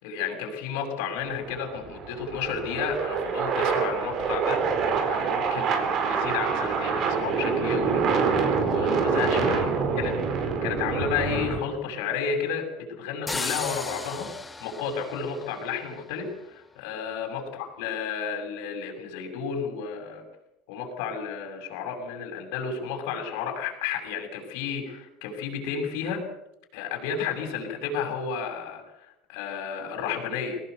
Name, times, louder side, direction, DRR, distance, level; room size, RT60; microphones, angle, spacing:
voice 1, 0.0-8.0 8.6-14.3 14.6-20.2 20.7-26.2 26.7-30.6, left 6 dB, 80° left, 3 dB, 6.8 m, -32 dB
sound 1, 1.2-11.6, right 5 dB, 40° right, 4.3 m, -26 dB
sound 2, 13.3-16.1, left 3 dB, 10° left, 1.1 m, -35 dB
23.0 x 18.0 x 8.2 m, 0.82 s
cardioid pair, 160°, 0 cm